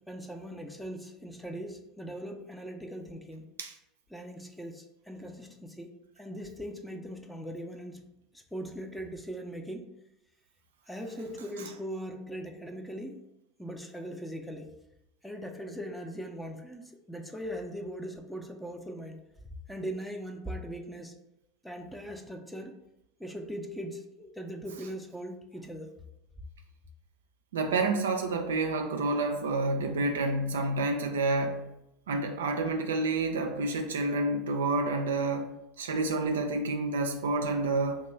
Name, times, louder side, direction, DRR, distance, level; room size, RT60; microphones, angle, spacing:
voice 1, 0.0-3.5 4.1-8.0 8.3-9.9 10.9-13.2 13.6-14.7 15.2-19.2 19.7-21.1 21.6-22.8 23.2-25.9, equal, 5° left, 3 dB, 0.5 m, -40 dB
voice 2, 27.5-31.7 32.1-38.0, right 2 dB, 75° right, 4 dB, 0.4 m, -29 dB
2.9 x 2.3 x 4.1 m, 0.89 s
figure-of-eight pair, 75°, 0 cm